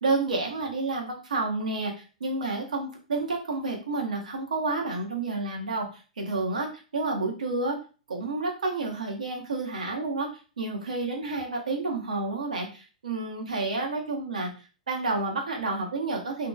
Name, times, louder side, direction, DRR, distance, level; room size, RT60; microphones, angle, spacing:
voice 1, 0.0-5.9 6.2-6.7 6.9-7.8 8.1-10.3 10.6-14.5 14.9-16.5, right 3 dB, 70° right, 2 dB, 0.8 m, -30 dB
2.9 x 2.8 x 2.2 m, 0.36 s
figure-of-eight pair, 105°, 4 cm